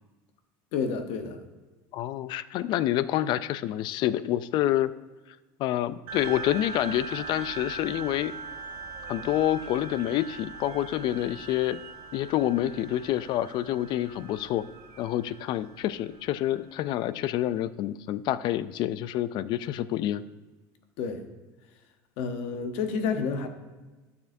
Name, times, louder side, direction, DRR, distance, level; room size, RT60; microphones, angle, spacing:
voice 1, 0.7-1.4 21.0-21.2 22.2-23.5, left 5 dB, 65° left, 7 dB, 0.9 m, -29 dB
voice 2, 1.9-4.9 5.6-8.4 9.1-11.8 12.1-14.6 15.0-20.2, left 13 dB, 50° left, 16 dB, 0.3 m, -28 dB
sound 1, 6.1-16.9, right 4 dB, 60° right, 1.3 m, -41 dB
12.0 x 6.8 x 2.6 m, 1.2 s
supercardioid pair, 130°, 10 cm